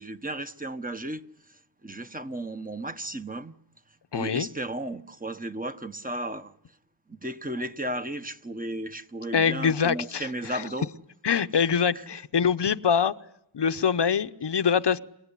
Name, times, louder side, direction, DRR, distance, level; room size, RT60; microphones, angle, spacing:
voice 1, 0.0-3.5 3.9-6.8 7.1-10.9 11.5-12.2, right 1 dB, 15° right, 1.2 m, -35 dB
voice 2, 4.1-4.5 9.3-10.2 10.5-10.6 11.2-13.1 13.5-15.0, left 7 dB, 55° left, 0.9 m, -24 dB
30.0 x 17.0 x 10.0 m
wide cardioid pair, 70°, 50 cm